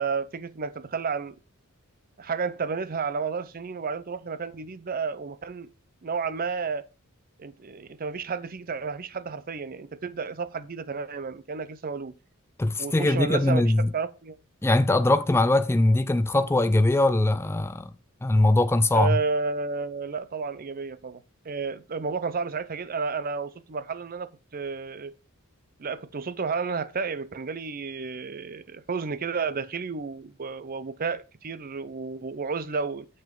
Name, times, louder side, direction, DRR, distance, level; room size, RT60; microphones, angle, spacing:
voice 1, 0.0-1.4 2.2-5.7 6.0-6.9 7.4-12.1 12.8-14.4 18.9-25.1 25.8-33.1, right 5 dB, 40° right, 0.6 m, -31 dB
voice 2, 12.6-13.9 14.6-17.9 18.2-19.2, left 2 dB, 10° left, 0.4 m, -21 dB
7.0 x 6.1 x 3.7 m
head